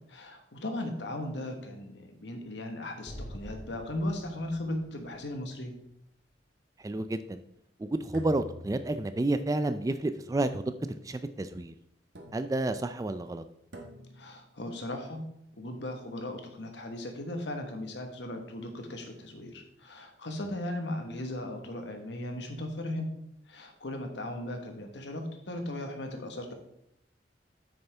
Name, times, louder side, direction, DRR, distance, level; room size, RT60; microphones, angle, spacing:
voice 1, 0.1-5.7 14.1-15.2 15.6-23.1 23.5-26.5, left 1 dB, 75° left, 5 dB, 1.3 m, -37 dB
Explosion, 3.1-6.3, equal, 55° left, 2.1 m, -46 dB
voice 2, 6.8-7.4 7.8-10.6 11.0-11.7 12.3-13.4, right 2 dB, 20° right, 11 dB, 0.3 m, -30 dB
sound 1, 8.1-9.3 10.4-11.2 12.1-12.8 13.7-14.4, equal, 75° right, 1.3 m, -47 dB
8.5 x 6.6 x 3.4 m, 0.76 s
head